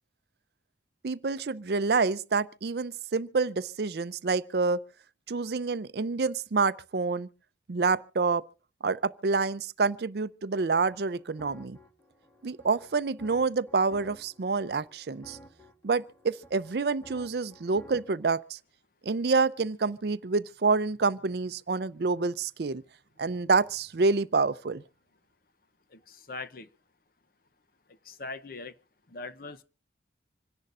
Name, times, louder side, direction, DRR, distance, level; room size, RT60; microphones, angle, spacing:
voice 1, 1.0-4.8 5.3-7.3 7.7-8.4 8.8-11.8 12.4-15.4 15.8-18.6 19.1-22.8 23.2-24.8, right 4 dB, 60° right, 0.5 m, -27 dB
sound 1, 10.5-18.2, equal, 15° left, 1.9 m, -54 dB
voice 2, 25.9-26.7 27.9-28.7 29.1-29.6, left 3 dB, 50° left, 0.8 m, -41 dB
26.5 x 11.0 x 2.5 m
head